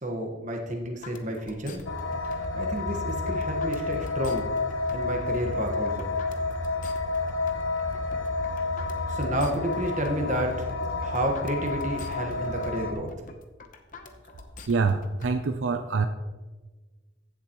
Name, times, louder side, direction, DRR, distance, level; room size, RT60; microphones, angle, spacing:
voice 1, 0.0-1.8 2.5-4.5 4.9-6.2 9.1-10.6 11.0-13.1, right 1 dB, 40° right, 2 dB, 1.4 m, -30 dB
sound 1, 1.0-15.3, left 4 dB, 45° left, 0.8 m, -47 dB
sound 2, 1.8-12.9, left 3 dB, 80° left, 1.0 m, -30 dB
voice 2, 14.7-16.1, right 4 dB, 75° right, 8 dB, 0.5 m, -25 dB
15.0 x 7.2 x 3.0 m, 1.3 s
head